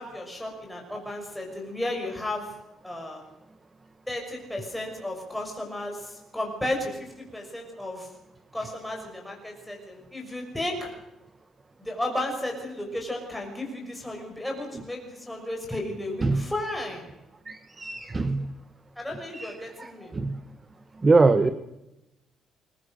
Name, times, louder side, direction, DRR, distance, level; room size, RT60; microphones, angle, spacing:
voice 1, 0.0-2.5 2.8-3.2 4.1-8.1 8.5-10.9 11.8-17.1 19.0-20.1, left 1 dB, 5° left, 0 dB, 6.3 m, -33 dB
voice 2, 17.5-18.5 19.3-19.5 19.8-19.9 20.1-20.4 21.0-21.5, right 3 dB, 20° right, 10 dB, 1.1 m, -22 dB
27.5 x 22.5 x 6.5 m, 0.90 s
cardioid pair, 175°, 0 cm